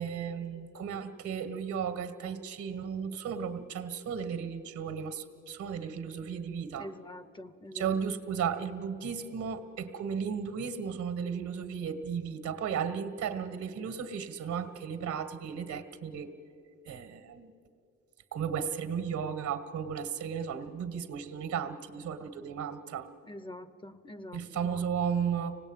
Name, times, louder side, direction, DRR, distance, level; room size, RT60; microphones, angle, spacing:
voice 1, 0.0-6.9 7.7-16.3 16.8-17.5 18.3-23.1 24.3-25.6, right 7 dB, 70° right, 10 dB, 1.9 m, -35 dB
voice 2, 6.8-7.9 23.2-24.8, left 1 dB, 15° left, 13 dB, 0.9 m, -45 dB
25.5 x 18.5 x 9.1 m, 2.7 s
cardioid pair, 90°, 30 cm